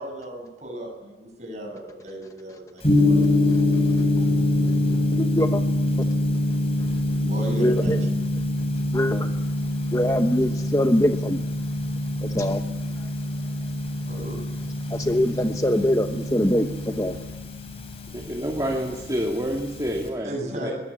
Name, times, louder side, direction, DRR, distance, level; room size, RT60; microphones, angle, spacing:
voice 1, 0.0-3.2 7.2-8.0 14.1-14.4 20.2-20.7, right 1 dB, 40° right, 7.5 m, -35 dB
Gong, 2.8-20.1, left 1 dB, 35° left, 4.9 m, -25 dB
voice 2, 5.1-5.6 7.6-8.0 8.9-9.3 9.9-11.4 12.2-12.6 13.0-13.1 14.9-17.2, left 1 dB, 20° left, 0.9 m, -23 dB
voice 3, 18.1-20.7, equal, 20° right, 2.3 m, -28 dB
22.0 x 20.0 x 8.5 m
head